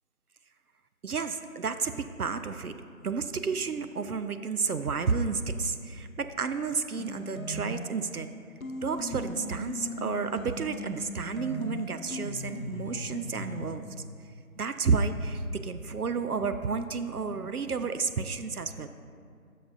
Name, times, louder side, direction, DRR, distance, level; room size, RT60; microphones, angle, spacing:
voice 1, 1.0-2.7 3.0-8.3 8.8-13.8 14.6-18.9, right 5 dB, 75° right, 9 dB, 0.5 m, -31 dB
sound 1, 7.0-8.1 8.6-13.8, equal, 65° left, 0.8 m, -38 dB
13.5 x 6.6 x 2.6 m, 2.3 s
figure-of-eight pair, 180°, 45 cm